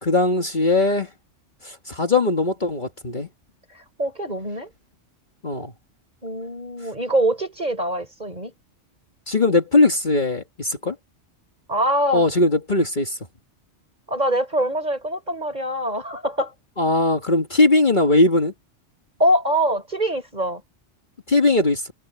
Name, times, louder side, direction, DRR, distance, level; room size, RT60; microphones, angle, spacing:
voice 1, 0.0-1.1 1.6-3.3 5.4-5.7 9.3-11.0 12.1-13.2 16.8-18.5 21.3-21.8, left 2 dB, 40° left, 1.9 m, -19 dB
voice 2, 4.0-4.7 6.2-8.5 11.7-12.3 14.1-16.5 19.2-20.6, right 1 dB, 35° right, 4.9 m, -23 dB
omnidirectional pair, 1.3 m